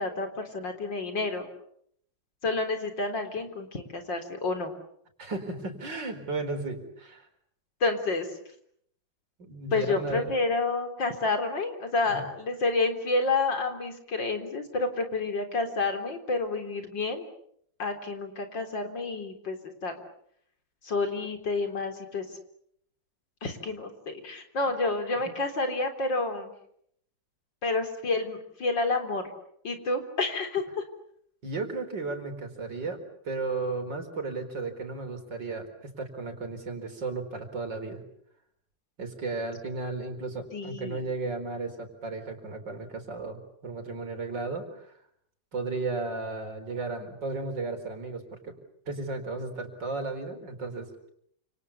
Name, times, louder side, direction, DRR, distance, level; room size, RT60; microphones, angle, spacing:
voice 1, 0.0-1.5 2.4-4.7 7.8-8.3 9.7-17.3 17.8-19.9 20.8-22.3 23.4-26.5 27.6-29.3 29.6-30.8 40.5-41.0, left 3 dB, 80° left, 6 dB, 4.4 m, -29 dB
voice 2, 5.2-7.3 9.4-10.3 12.0-12.3 31.4-38.0 39.0-44.9 45.5-48.6 48.9-51.1, right 3 dB, 75° right, 6 dB, 5.0 m, -34 dB
29.0 x 27.5 x 7.1 m, 0.69 s
omnidirectional pair, 2.0 m